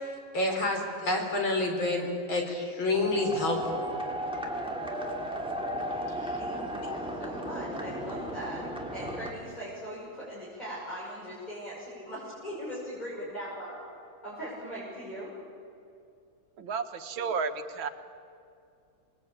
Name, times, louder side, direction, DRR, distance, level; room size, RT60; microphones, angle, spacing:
voice 1, 0.3-3.9 6.2-6.3, left 2 dB, 85° left, 2 dB, 4.7 m, -28 dB
sound 1, 2.9-9.3, right 1 dB, 5° right, 2.6 m, -35 dB
voice 2, 6.4-8.6 8.9-13.7 14.2-15.3, equal, 20° left, -7 dB, 6.4 m, -40 dB
voice 3, 16.6-17.9, right 5 dB, 80° right, 7 dB, 2.1 m, -32 dB
27.0 x 21.0 x 8.8 m, 2.4 s
omnidirectional pair, 2.1 m